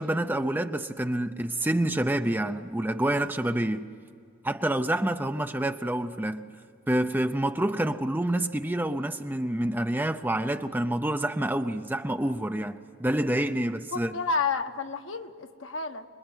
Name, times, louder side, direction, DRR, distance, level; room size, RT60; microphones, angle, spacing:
voice 1, 0.0-3.9 4.4-6.5 6.9-14.1, right 1 dB, 10° right, 0.6 m, -27 dB
voice 2, 13.9-16.0, left 4 dB, 70° left, 1.3 m, -30 dB
26.0 x 22.0 x 9.5 m
head